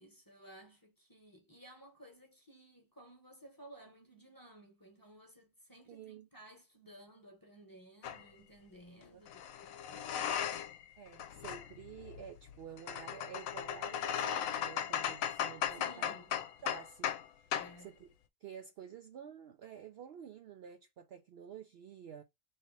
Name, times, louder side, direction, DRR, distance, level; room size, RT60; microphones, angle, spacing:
voice 1, 0.0-10.5 15.7-16.4 17.5-17.9, right 1 dB, 15° left, 1.0 m, -57 dB
voice 2, 5.9-6.3 9.1-9.2 10.9-16.2 16.6-17.5 17.8-18.1 18.4-22.2, right 8 dB, 65° right, 0.6 m, -50 dB
sound 1, 8.0-8.2 9.3-10.8 11.1-17.3 17.5-17.7, left 9 dB, 85° left, 1.0 m, -37 dB
3.2 x 2.9 x 4.0 m
omnidirectional pair, 1.4 m